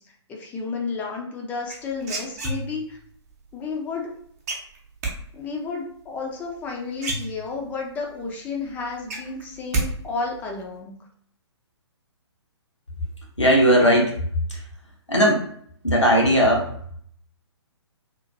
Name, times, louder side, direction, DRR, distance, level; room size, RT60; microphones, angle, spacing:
voice 1, 0.3-3.0 3.5-4.1 5.3-11.0, left 4 dB, 10° left, 0 dB, 0.4 m, -32 dB
sound 1, 1.7-3.0 4.5-5.1 6.6-6.7 7.0-7.8 8.2-8.3 8.6-9.9 10.1-10.6, right 3 dB, 35° right, 0.7 m, -29 dB
voice 2, 13.4-14.1 14.5-14.6 15.1-15.4 15.8-16.7, equal, 90° left, -2 dB, 1.0 m, -17 dB
2.9 x 2.4 x 2.5 m, 0.63 s
figure-of-eight pair, 125°, 15 cm